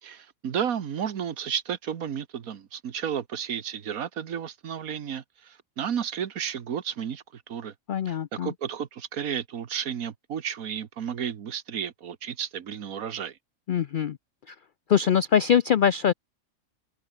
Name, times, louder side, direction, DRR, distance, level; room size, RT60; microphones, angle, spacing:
voice 1, 0.0-7.7 8.1-13.4, right 8 dB, 70° right, 1.6 m, -32 dB
voice 2, 7.9-8.5 13.7-14.2 14.5-14.6 14.9-16.1, left 8 dB, 85° left, 0.4 m, -23 dB
omnidirectional pair, 1.5 m